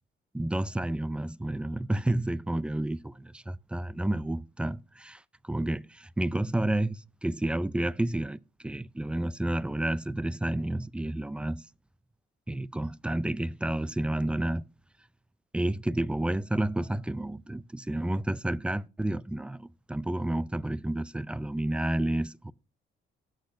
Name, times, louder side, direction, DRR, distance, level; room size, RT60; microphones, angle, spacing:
voice 1, 0.3-11.6 12.5-14.7 15.5-22.5, right 1 dB, 5° right, 0.4 m, -30 dB
17.0 x 6.5 x 2.6 m
cardioid pair, 90°, 20 cm